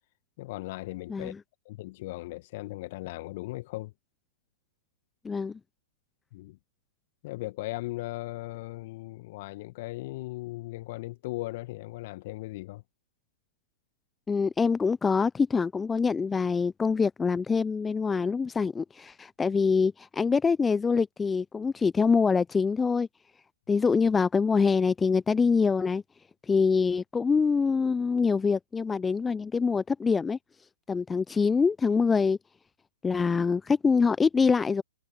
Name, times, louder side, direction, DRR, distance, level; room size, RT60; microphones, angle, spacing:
voice 1, 0.4-1.3 1.6-3.9 6.3-6.6 7.2-12.8, left 19 dB, 40° left, 1.6 m, -37 dB
voice 2, 5.2-5.6 14.3-23.1 23.7-26.0 26.5-30.4 30.9-32.4 33.0-34.8, left 5 dB, 10° left, 0.7 m, -25 dB
figure-of-eight pair, 115°, 0 cm